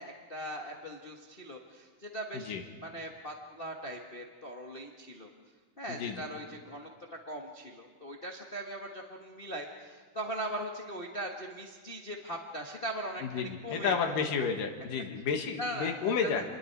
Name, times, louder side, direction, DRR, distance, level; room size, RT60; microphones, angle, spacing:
voice 1, 0.0-2.5 2.8-5.3 5.8-6.9 7.3-14.2 15.6-16.4, right 1 dB, 65° left, 1 dB, 0.5 m, -40 dB
voice 2, 5.9-6.3 13.2-16.4, left 6 dB, 90° left, 3 dB, 3.2 m, -31 dB
27.5 x 21.5 x 4.7 m, 1.5 s
omnidirectional pair, 3.7 m